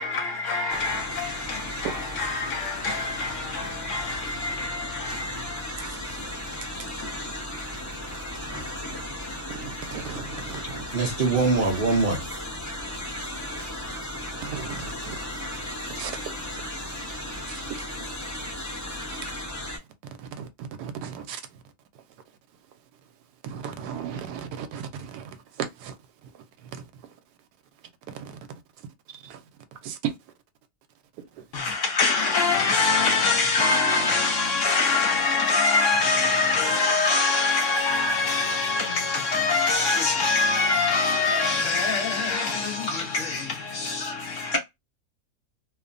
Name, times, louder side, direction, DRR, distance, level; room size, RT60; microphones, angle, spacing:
voice 1, 0.0-5.7 31.5-44.6, left 4 dB, 65° left, 0.8 m, -24 dB
sound 1, 0.7-19.8, left 1 dB, 20° left, 0.5 m, -35 dB
voice 2, 5.8-8.0 8.9-9.3 9.6-10.8 14.2-15.2 15.9-17.0 17.5-18.5 19.1-19.3 19.8-19.9 20.2-21.6 21.9-22.0 22.7-23.0 23.4-27.2 27.8-30.2 31.1-31.5, right 8 dB, 80° right, 1.2 m, -38 dB
voice 3, 10.9-12.3 44.5-44.6, right 3 dB, 60° right, 0.6 m, -23 dB
3.0 x 2.1 x 2.4 m
omnidirectional pair, 1.7 m